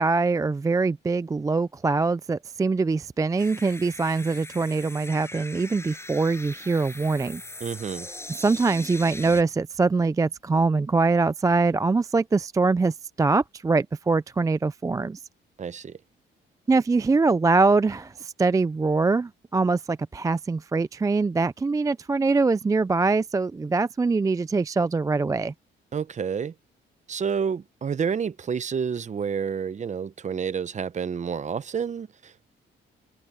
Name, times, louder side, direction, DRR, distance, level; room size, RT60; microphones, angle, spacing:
voice 1, 0.0-7.4 8.3-15.2 16.7-25.5, right 3 dB, 15° right, 0.4 m, -23 dB
sound 1, 3.4-9.4, left 2 dB, 15° left, 7.5 m, -41 dB
voice 2, 7.6-8.1 15.6-16.0 25.9-26.5 27.1-32.5, right 6 dB, 35° right, 0.8 m, -29 dB
cardioid pair, 90°, 20 cm